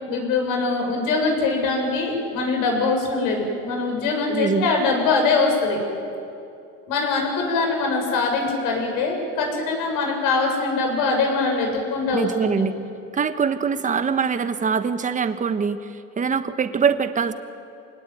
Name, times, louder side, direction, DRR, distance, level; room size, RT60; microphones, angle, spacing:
voice 1, 0.1-5.8 6.9-12.6, left 3 dB, 75° left, 1 dB, 7.5 m, -23 dB
voice 2, 4.3-4.7 12.1-12.8 13.1-17.3, right 6 dB, 25° right, 10 dB, 1.3 m, -23 dB
27.0 x 19.0 x 9.2 m, 2.6 s
cardioid pair, 125°, 32 cm